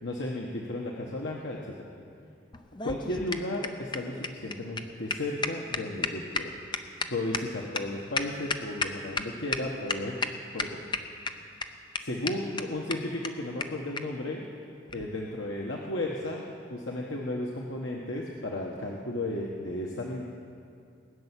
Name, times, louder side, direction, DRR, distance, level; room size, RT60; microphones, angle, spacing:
voice 1, 0.0-1.7 2.8-6.5 7.1-10.2 10.5-10.8 12.0-14.4 14.9-16.4 16.7-20.2, left 1 dB, 75° left, -2 dB, 1.3 m, -34 dB
sound 1, 2.5-9.2 9.5-9.6 9.9-10.3 10.6-11.3 11.6-11.7 11.9-12.0 12.3-12.4 12.6-12.7 12.9-13.0 13.2-13.3 13.6-13.7 14.0-14.1 14.9-15.0, left 4 dB, 25° left, 0.7 m, -31 dB
19.5 x 7.0 x 9.9 m, 2.5 s
head